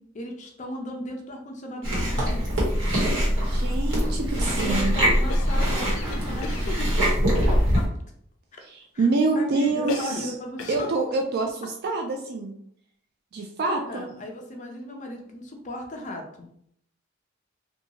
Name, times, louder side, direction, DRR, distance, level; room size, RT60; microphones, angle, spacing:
voice 1, 0.0-2.5 4.4-7.1 7.5-7.9 8.5-8.6 8.9-9.1 9.4-10.9 13.8-16.5, left 1 dB, 40° left, 2 dB, 0.5 m, -36 dB
Chewing mastication, 1.8-7.9, equal, 75° right, 1.2 m, -23 dB
voice 2, 3.4-5.0 8.7-10.3 10.7-12.5 13.3-14.1, right 3 dB, 50° right, 3 dB, 0.4 m, -26 dB
Cough, 5.3-6.9 9.9-10.3 10.6-11.0, left 4 dB, 85° left, 0.4 m, -35 dB
2.7 x 2.2 x 2.8 m, 0.68 s
head